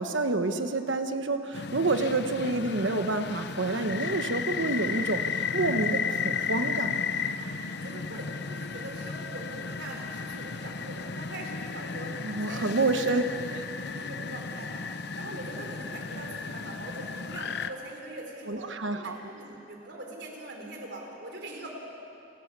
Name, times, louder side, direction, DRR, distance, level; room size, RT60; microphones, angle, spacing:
voice 1, 0.0-7.0 12.2-13.2 13.5-13.6 18.5-19.2, right 2 dB, 85° right, 8 dB, 1.3 m, -28 dB
sound 1, 1.5-17.7, left 5 dB, 60° left, 0.8 m, -34 dB
voice 2, 7.7-13.5 13.8-14.8 15.2-21.8, right 1 dB, 65° right, 1 dB, 3.8 m, -42 dB
29.5 x 12.0 x 8.3 m, 2.8 s
head